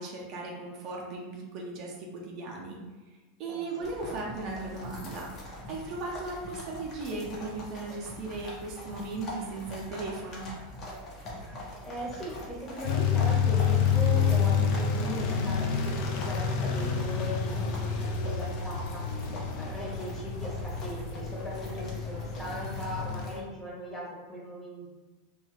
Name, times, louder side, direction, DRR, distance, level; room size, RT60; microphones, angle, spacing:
voice 1, 0.0-2.8 3.4-5.4 5.7-10.5, right 3 dB, 50° right, -1 dB, 0.5 m, -37 dB
sound 1, 3.8-23.4, left 1 dB, 40° left, 0.8 m, -43 dB
voice 2, 11.5-24.9, equal, 15° left, -4 dB, 1.0 m, -39 dB
sound 2, 12.8-23.3, left 6 dB, 55° left, 0.4 m, -29 dB
2.4 x 2.3 x 3.2 m, 1.2 s
hypercardioid pair, 90°, 0 cm